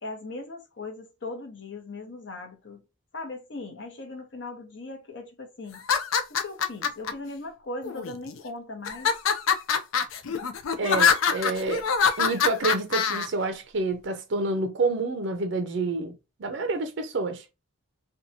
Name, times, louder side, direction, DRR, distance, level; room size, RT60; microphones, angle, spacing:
voice 1, 0.0-2.8 3.1-5.8 6.3-9.1, left 2 dB, 60° left, 0.8 m, -39 dB
sound 1, 5.7-7.1 7.8-8.4 8.8-13.3, left 6 dB, 80° left, 0.5 m, -24 dB
voice 2, 10.8-11.9 12.2-16.1 16.4-17.4, right 3 dB, 60° right, 0.5 m, -28 dB
2.7 x 2.3 x 2.6 m
head